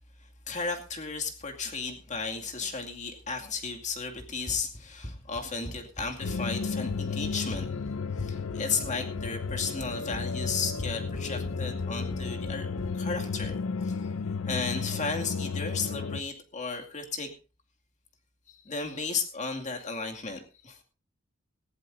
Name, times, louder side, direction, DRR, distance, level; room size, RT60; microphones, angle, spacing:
voice 1, 0.2-7.7 8.2-12.7 12.9-14.1 14.4-17.3 18.5-20.8, left 4 dB, 35° left, 3 dB, 2.3 m, -34 dB
Run, 4.2-13.6, equal, 20° left, 1.6 m, -43 dB
sound 1, 6.2-16.2, left 4 dB, 75° left, 0.6 m, -33 dB
18.0 x 16.0 x 2.7 m, 0.33 s
head